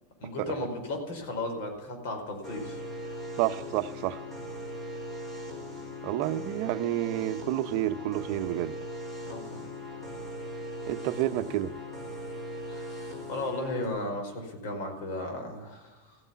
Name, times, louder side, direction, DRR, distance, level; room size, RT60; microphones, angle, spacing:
voice 1, 0.2-2.8 3.0-3.2 9.2-9.6 12.7-16.2, left 2 dB, 60° left, 4.9 m, -35 dB
sound 1, 2.4-13.9, equal, 15° left, 4.2 m, -39 dB
voice 2, 3.4-4.2 6.0-8.7 10.9-11.7, right 14 dB, 50° right, 0.8 m, -29 dB
15.0 x 9.6 x 9.6 m
supercardioid pair, 170°, 0 cm